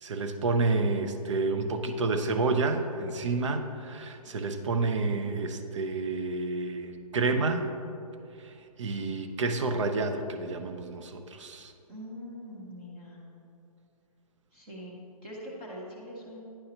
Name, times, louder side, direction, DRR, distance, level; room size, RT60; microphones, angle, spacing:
voice 1, 0.0-7.7 8.4-8.5 8.8-11.7, right 3 dB, 50° right, 8 dB, 0.5 m, -29 dB
voice 2, 11.9-13.2 14.5-16.4, equal, 15° right, -6 dB, 0.7 m, -43 dB
9.9 x 5.4 x 2.8 m, 2.6 s
hypercardioid pair, 170°, 20 cm